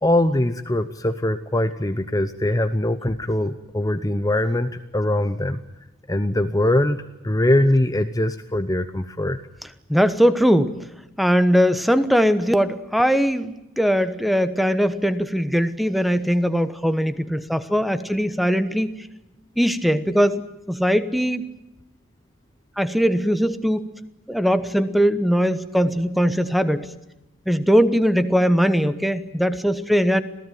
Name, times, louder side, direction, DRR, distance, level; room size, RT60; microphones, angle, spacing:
voice 1, 0.0-5.6 6.1-9.4, left 1 dB, 15° left, 9 dB, 0.8 m, -22 dB
voice 2, 9.9-10.8 11.2-19.1 19.6-21.5 22.8-23.8 24.3-26.9 27.5-30.2, equal, ahead, 11 dB, 1.1 m, -20 dB
26.5 x 17.0 x 9.2 m, 0.94 s
head